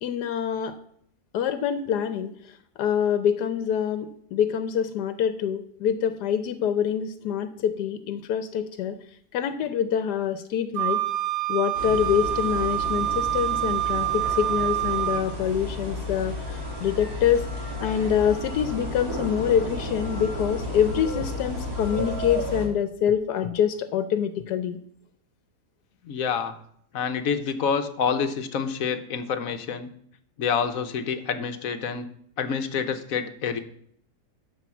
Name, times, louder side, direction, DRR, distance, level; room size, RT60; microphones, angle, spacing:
voice 1, 0.0-0.7 1.3-2.3 2.8-9.0 9.3-11.0 11.5-17.5 17.8-24.8, left 8 dB, 85° left, 11 dB, 1.3 m, -25 dB
Wind instrument woodwind instrument, 10.7-15.3, right 13 dB, 90° right, 1.6 m, -26 dB
sound 1, 11.7-22.7, left 1 dB, 60° right, 2.9 m, -33 dB
voice 2, 26.0-26.5 26.9-29.9 30.4-32.1 32.4-33.6, left 6 dB, 65° left, 9 dB, 1.2 m, -27 dB
12.0 x 4.8 x 7.0 m, 0.67 s
omnidirectional pair, 1.7 m